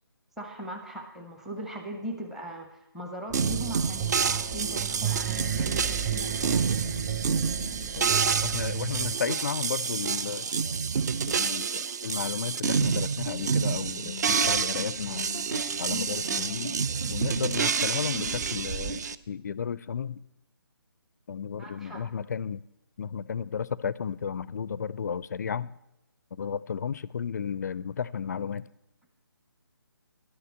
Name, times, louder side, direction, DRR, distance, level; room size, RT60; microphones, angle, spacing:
voice 1, 0.4-6.8 21.6-22.0, right 1 dB, 5° right, 0.7 m, -39 dB
sound 1, 3.3-9.1, right 9 dB, 30° right, 1.3 m, -33 dB
sound 2, 3.3-19.2, right 6 dB, 45° right, 0.4 m, -28 dB
voice 2, 8.4-10.5 11.3-15.3 15.8-16.7 17.1-20.2 21.3-22.6 23.0-25.7 26.3-28.7, left 7 dB, 45° left, 0.4 m, -33 dB
sound 3, 13.3-19.0, right 1 dB, 65° right, 2.5 m, -39 dB
11.0 x 6.7 x 8.1 m
figure-of-eight pair, 150°, 13 cm